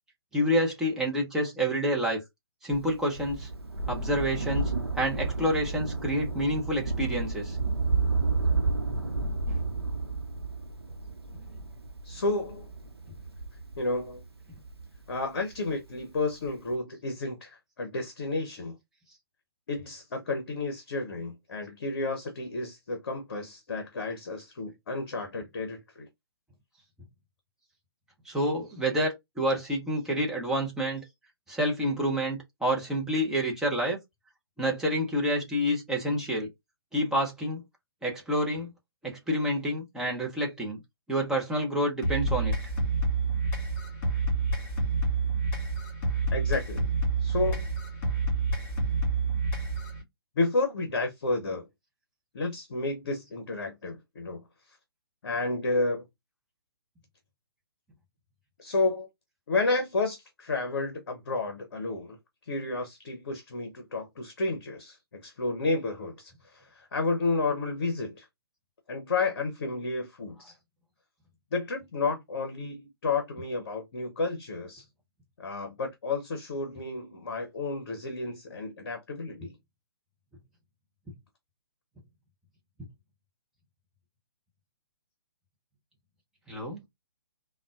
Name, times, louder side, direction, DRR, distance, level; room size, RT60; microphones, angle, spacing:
voice 1, 0.3-2.2 2.6-3.5 3.9-7.6 28.3-31.0 31.5-34.0 34.6-36.5 36.9-37.6 38.0-38.7 39.0-40.8 41.1-42.6 86.5-86.8, equal, 5° right, 0.8 m, -28 dB
Thunder, 2.7-15.6 16.5-16.6, right 3 dB, 75° right, 0.9 m, -31 dB
voice 2, 12.0-12.7 13.8-14.2 15.1-18.8 19.7-26.1 46.3-46.9 47.2-47.7 50.4-51.7 52.3-54.4 55.2-56.1 58.6-59.1 59.5-62.2 62.5-68.3 68.9-70.5 71.5-74.8 75.4-79.5, left 3 dB, 50° left, 0.9 m, -31 dB
sound 1, 42.0-50.0, right 3 dB, 30° left, 2.3 m, -28 dB
3.6 x 2.3 x 2.5 m
figure-of-eight pair, 130°, 13 cm